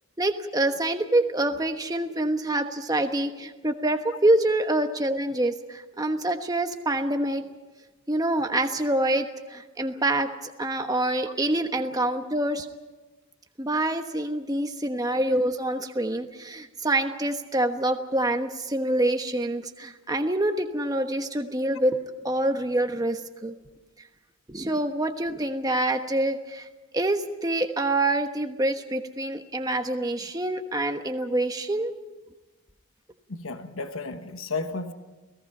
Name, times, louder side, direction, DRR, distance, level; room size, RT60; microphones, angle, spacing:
voice 1, 0.2-7.4 8.1-12.7 13.6-22.0 22.2-23.5 24.5-26.7 26.9-31.9, right 1 dB, 15° right, 6 dB, 1.2 m, -26 dB
voice 2, 33.3-34.9, left 3 dB, 65° left, 8 dB, 1.3 m, -33 dB
29.5 x 18.5 x 5.5 m, 1.1 s
head